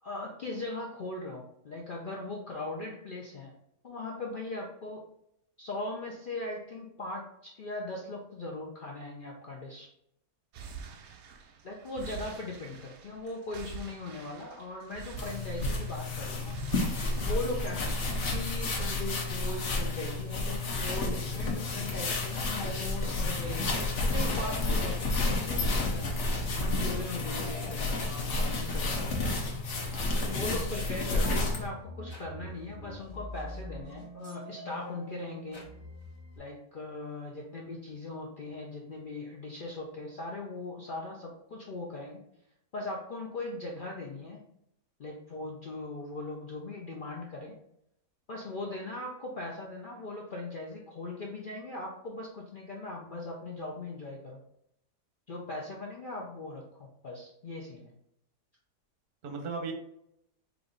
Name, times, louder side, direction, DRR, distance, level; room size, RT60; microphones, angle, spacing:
voice 1, 0.0-3.5 3.8-5.0 5.6-9.9 11.6-16.6 17.2-23.7 24.0-26.1 26.6-29.3 30.2-35.6 36.4-42.2 42.7-44.4 45.0-47.6 48.3-54.4 55.3-57.9, left 2 dB, 75° left, -2 dB, 0.4 m, -39 dB
sound 1, 10.5-28.5, right 6 dB, 75° right, 0.6 m, -47 dB
sound 2, 15.2-31.7, left 2 dB, 50° left, 1.0 m, -31 dB
sound 3, 22.7-36.4, right 1 dB, 20° left, 0.9 m, -44 dB
voice 2, 29.2-29.5 29.9-30.3 59.2-59.7, right 4 dB, 45° right, 3 dB, 0.8 m, -39 dB
4.6 x 2.6 x 3.8 m, 0.77 s
omnidirectional pair, 1.8 m